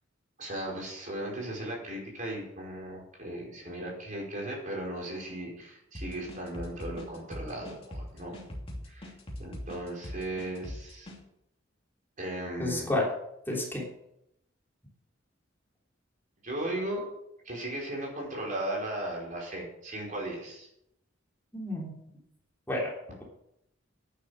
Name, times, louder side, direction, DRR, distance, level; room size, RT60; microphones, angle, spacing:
voice 1, 0.4-8.4 8.9-9.1 9.4-11.1 12.2-12.9 16.4-17.0 17.4-20.7, right 1 dB, 45° right, -2 dB, 5.0 m, -36 dB
sound 1, 5.9-11.2, left 1 dB, 30° left, 2.8 m, -41 dB
voice 2, 12.6-13.1 13.4-13.8 21.5-22.0 22.7-22.9, left 1 dB, 10° left, -3 dB, 3.3 m, -30 dB
11.5 x 9.5 x 6.6 m, 0.79 s
head